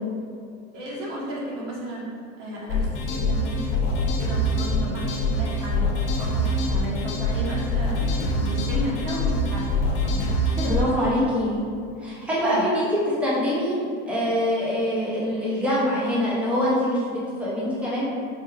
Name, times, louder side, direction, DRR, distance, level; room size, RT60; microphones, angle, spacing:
voice 1, 0.7-2.0 2.4-5.8 6.2-9.7 10.0-11.2 12.4-12.6, right 1 dB, 85° right, -5 dB, 1.3 m, -33 dB
sound 1, 2.7-10.8, left 1 dB, 50° left, 0.8 m, -24 dB
voice 2, 10.6-11.6 12.0-13.7 14.1-18.1, equal, 5° right, -8 dB, 0.4 m, -24 dB
4.3 x 3.2 x 2.3 m, 2.3 s
supercardioid pair, 165°, 35 cm